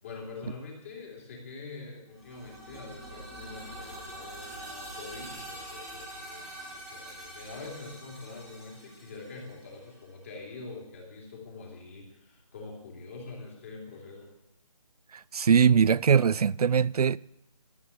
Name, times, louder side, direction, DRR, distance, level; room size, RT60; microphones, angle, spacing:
voice 1, 0.0-14.3, left 3 dB, 25° left, 2.9 m, -44 dB
sound 1, 2.1-10.0, right 1 dB, ahead, 1.8 m, -44 dB
voice 2, 15.1-17.2, right 7 dB, 80° right, 0.4 m, -22 dB
13.0 x 8.4 x 8.5 m
hypercardioid pair, 175°, 19 cm